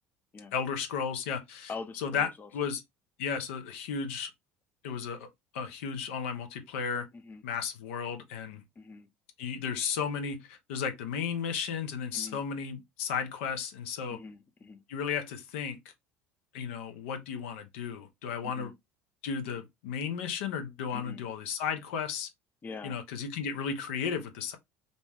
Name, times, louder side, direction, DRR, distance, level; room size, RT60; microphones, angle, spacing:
voice 1, 0.5-1.7 2.0-2.8 3.2-4.3 4.8-5.3 5.5-7.1 7.4-8.6 9.4-14.2 14.9-15.8 16.5-18.7 19.2-22.3 22.8-24.6, left 6 dB, 75° left, 0.6 m, -34 dB
voice 2, 1.7-2.5 7.1-7.4 8.8-9.1 12.1-12.4 14.1-14.8 18.4-18.7 20.9-21.2 22.6-23.0, left 4 dB, 25° left, 0.6 m, -43 dB
2.6 x 2.2 x 3.3 m
hypercardioid pair, 80°, 7 cm